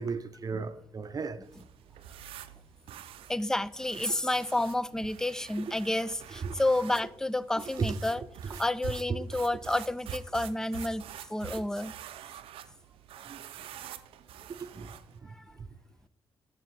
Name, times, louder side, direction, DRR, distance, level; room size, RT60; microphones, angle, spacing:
voice 1, 0.0-1.5 6.4-6.6 7.8-8.0 8.4-8.6 9.1-9.2 13.2-13.4 14.5-15.7, right 5 dB, 40° right, 0.6 m, -36 dB
sound 1, 1.4-15.2, right 9 dB, 90° right, 0.4 m, -47 dB
voice 2, 3.3-11.9 15.3-15.4, left 1 dB, 5° left, 0.3 m, -30 dB
7.1 x 6.1 x 3.3 m
cardioid pair, 80°, 9 cm